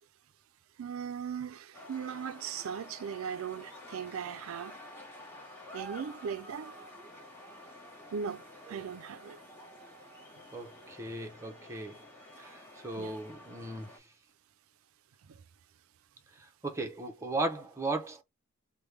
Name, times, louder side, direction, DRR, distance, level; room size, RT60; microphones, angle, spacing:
voice 1, 0.8-4.8 5.7-6.7 8.1-8.4 8.7-9.4 13.0-13.1, right 7 dB, 70° right, 0.4 m, -38 dB
sound 1, 1.7-14.0, equal, 10° left, 1.0 m, -50 dB
voice 2, 10.5-12.0 12.4-13.9 16.4-18.2, right 2 dB, 15° right, 0.6 m, -37 dB
3.4 x 2.1 x 3.1 m
head